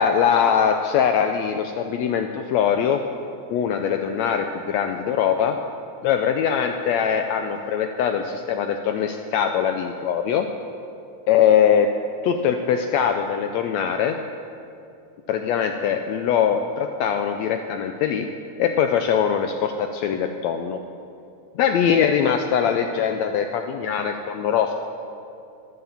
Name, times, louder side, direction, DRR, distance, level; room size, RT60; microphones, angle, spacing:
voice 1, 0.0-3.0 3.5-5.6 6.0-10.5 11.3-11.9 12.2-14.2 15.3-18.3 18.6-20.8 21.5-24.7, left 8 dB, 80° left, 6 dB, 1.6 m, -22 dB
13.0 x 9.6 x 7.1 m, 2.6 s
omnidirectional pair, 3.6 m